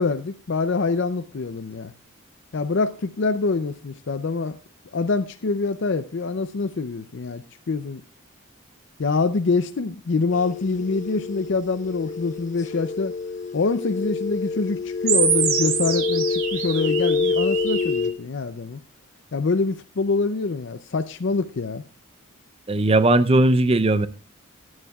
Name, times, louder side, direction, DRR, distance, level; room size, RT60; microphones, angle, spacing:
voice 1, 0.0-1.9 2.5-4.6 4.9-8.0 9.0-13.1 13.5-18.8 19.3-21.8, left 4 dB, 55° left, 0.5 m, -25 dB
sound 1, 10.3-18.1, left 4 dB, 35° left, 1.1 m, -27 dB
sound 2, 15.1-18.1, right 7 dB, 70° right, 2.7 m, -25 dB
voice 2, 22.7-24.1, right 2 dB, 25° right, 0.5 m, -18 dB
22.0 x 9.6 x 2.3 m
head